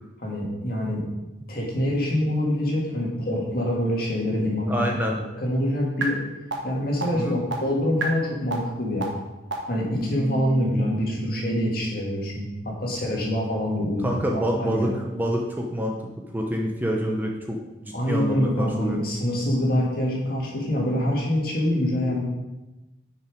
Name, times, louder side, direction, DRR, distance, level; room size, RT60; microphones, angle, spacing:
voice 1, 0.2-1.0 1.5-6.2 6.6-9.1 9.7-15.0 17.9-22.2, left 1 dB, 50° left, -2 dB, 1.9 m, -25 dB
voice 2, 4.7-5.2 7.1-7.3 14.0-16.0 16.3-17.6 17.8-19.0, equal, 10° right, 0 dB, 0.7 m, -26 dB
sound 1, 6.0-6.1 6.5-6.6 7.0-7.1 7.5-7.6 8.0-8.1 8.5-8.6 9.0-9.1 9.5-9.6 10.0-11.8, right 3 dB, 75° right, 1.4 m, -31 dB
6.5 x 5.8 x 5.1 m, 1.0 s
head